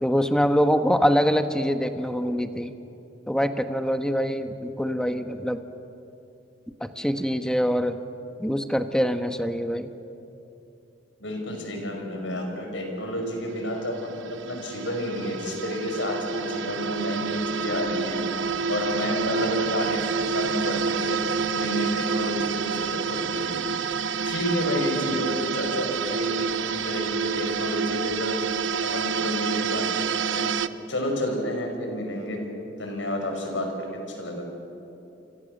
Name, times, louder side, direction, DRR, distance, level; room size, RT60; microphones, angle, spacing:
voice 1, 0.0-2.7 3.3-5.6 6.8-8.0 8.4-9.9, equal, 5° left, 8 dB, 1.1 m, -24 dB
voice 2, 11.2-18.2 18.7-23.6 24.2-28.4 28.8-30.5 30.9-32.4 32.8-34.5, left 1 dB, 85° left, 3 dB, 5.8 m, -30 dB
sound 1, 13.0-30.7, right 6 dB, 90° right, 0.8 m, -29 dB
29.5 x 25.0 x 6.7 m, 2.8 s
head